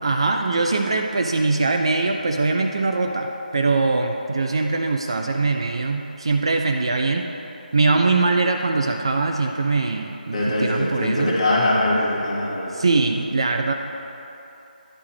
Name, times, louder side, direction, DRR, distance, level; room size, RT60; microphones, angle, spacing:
voice 1, 0.0-7.3 7.7-11.4 12.7-13.7, right 3 dB, 35° right, 3 dB, 0.3 m, -22 dB
voice 2, 10.3-12.7, left 1 dB, 35° left, -6 dB, 1.8 m, -22 dB
10.5 x 3.7 x 6.1 m, 2.9 s
figure-of-eight pair, 160°, 5 cm